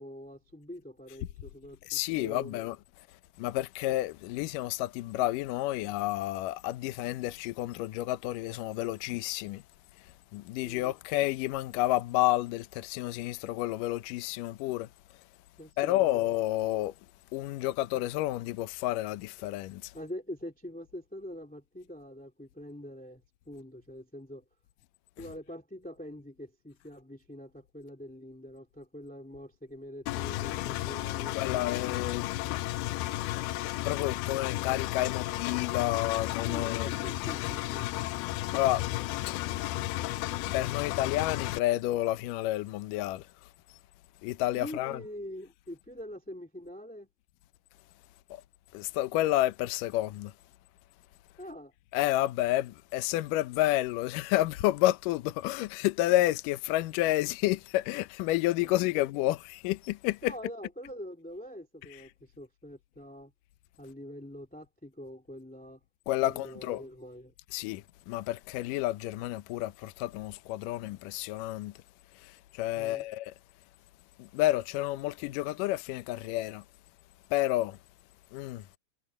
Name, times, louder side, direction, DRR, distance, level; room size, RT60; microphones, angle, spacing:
voice 1, 0.0-2.6 10.6-10.9 15.6-16.2 19.9-24.4 25.2-31.7 36.4-37.9 44.5-47.1 51.4-51.7 58.6-59.0 60.2-63.3 63.8-65.8 66.2-67.3 72.7-73.0, equal, 5° left, 1.2 m, -44 dB
voice 2, 1.9-2.8 3.4-9.6 10.3-14.9 15.8-16.9 17.3-19.9 31.4-32.3 32.8-33.0 33.8-36.9 38.5-38.9 40.5-43.3 44.2-45.0 48.3-48.4 48.7-50.3 51.9-60.3 66.1-66.8 67.5-71.7 72.2-73.3 74.2-76.6 77.3-77.8 78.3-78.6, left 16 dB, 75° left, 2.2 m, -30 dB
Engine, 30.1-41.6, left 17 dB, 90° left, 2.6 m, -33 dB
omnidirectional pair, 4.4 m